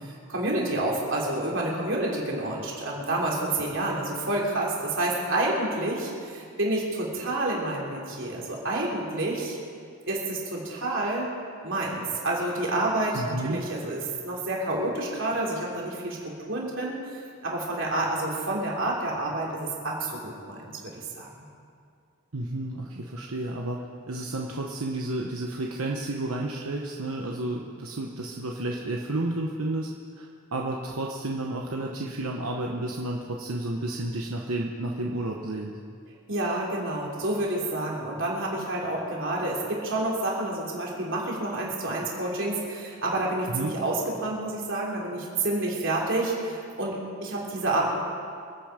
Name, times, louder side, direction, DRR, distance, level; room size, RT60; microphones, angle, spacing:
voice 1, 0.3-9.6 10.1-11.3 11.6-16.2 16.5-21.3 36.3-47.9, right 2 dB, 60° right, -3 dB, 3.5 m, -29 dB
voice 2, 13.1-13.6 22.3-29.9 30.2-35.8 43.5-43.7, right 2 dB, 85° right, -1 dB, 1.1 m, -31 dB
26.5 x 9.0 x 5.1 m, 2.3 s
head